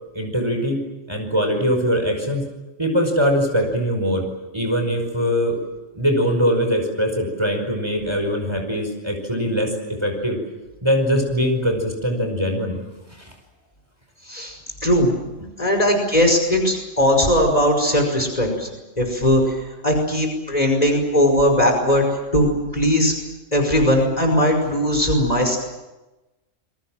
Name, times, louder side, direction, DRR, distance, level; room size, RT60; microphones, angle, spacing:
voice 1, 0.1-0.8 1.1-2.5 2.8-4.3 4.5-5.6 5.9-9.7 10.0-10.4 10.8-12.8 13.1-13.3, equal, 20° right, 3 dB, 5.3 m, -22 dB
voice 2, 15.6-18.7 19.0-19.4 19.8-22.0 22.3-23.1 23.5-25.6, equal, 30° left, 3 dB, 5.4 m, -18 dB
28.5 x 23.0 x 7.6 m, 1.1 s
omnidirectional pair, 1.3 m